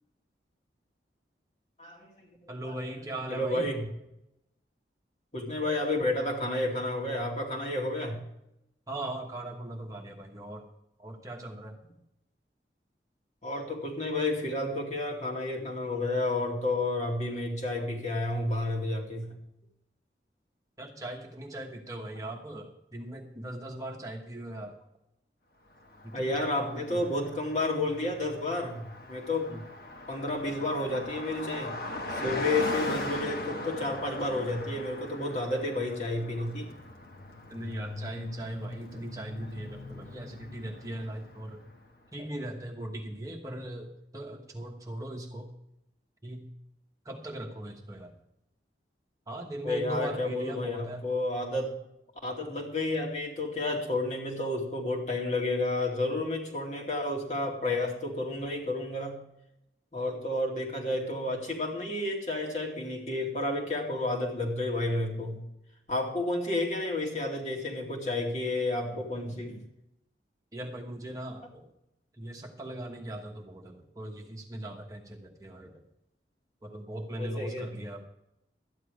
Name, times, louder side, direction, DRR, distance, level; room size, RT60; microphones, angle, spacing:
voice 1, 1.8-2.8 3.3-3.8 5.3-8.2 13.4-19.4 26.1-29.6 30.1-31.8 32.1-36.7 49.6-51.8 52.2-59.2 59.9-65.4 65.9-69.6 77.2-77.8, left 2 dB, 40° left, -1 dB, 2.5 m, -31 dB
voice 2, 2.5-3.7 8.9-10.6 11.0-11.8 20.8-24.8 26.0-27.3 29.5-29.6 37.5-41.6 42.1-45.5 46.2-46.5 47.0-48.1 49.3-51.0 70.5-71.7 72.2-75.8 76.6-78.1, right 1 dB, 20° right, 1 dB, 1.2 m, -39 dB
Car passing by, 25.8-41.9, left 2 dB, 55° left, 1.4 m, -40 dB
12.5 x 10.0 x 4.9 m, 0.84 s
head